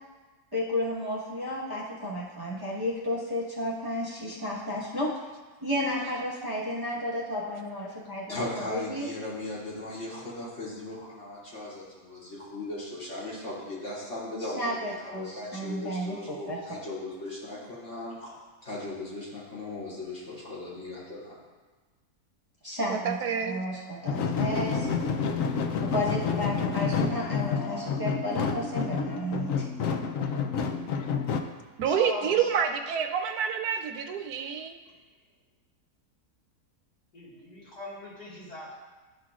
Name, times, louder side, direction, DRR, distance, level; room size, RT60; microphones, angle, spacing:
voice 1, 0.5-5.1 5.6-9.1 14.6-16.8 22.6-23.2 23.4-24.9 25.8-29.6, left 1 dB, 15° right, -7 dB, 1.1 m, -32 dB
voice 2, 8.3-18.3 18.6-21.3, left 2 dB, 50° left, -9 dB, 2.9 m, -38 dB
voice 3, 22.9-23.6 31.8-34.7, right 7 dB, 80° right, 6 dB, 1.1 m, -28 dB
sound 1, 24.1-31.4, left 5 dB, 70° left, 0.9 m, -29 dB
voice 4, 31.9-32.5 34.8-34.9 37.1-38.8, left 1 dB, 85° left, -7 dB, 2.5 m, -40 dB
11.5 x 5.8 x 2.4 m, 1.3 s
omnidirectional pair, 1.6 m